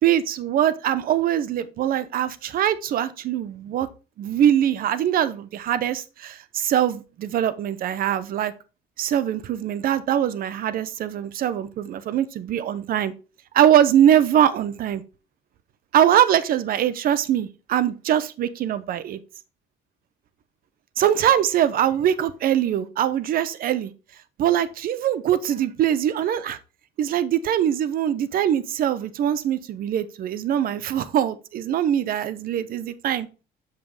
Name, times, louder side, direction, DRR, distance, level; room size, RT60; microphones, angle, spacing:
voice 1, 0.0-3.9 4.2-8.5 9.0-13.1 13.5-15.0 15.9-19.2 21.0-23.9 24.4-26.6 27.0-33.3, right 10 dB, 60° right, 0.7 m, -22 dB
7.1 x 5.6 x 3.3 m
cardioid pair, 110°, 17 cm